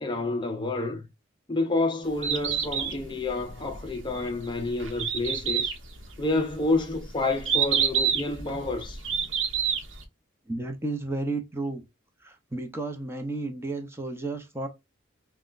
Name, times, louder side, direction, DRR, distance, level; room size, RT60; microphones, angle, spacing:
voice 1, 0.0-1.1 1.5-5.7 6.2-9.0, left 2 dB, 25° left, 0.5 m, -29 dB
Bird, 2.0-10.0, right 7 dB, 70° right, 0.9 m, -29 dB
voice 2, 10.5-11.8 12.2-14.7, right 2 dB, 15° right, 0.7 m, -32 dB
5.6 x 2.2 x 2.5 m
head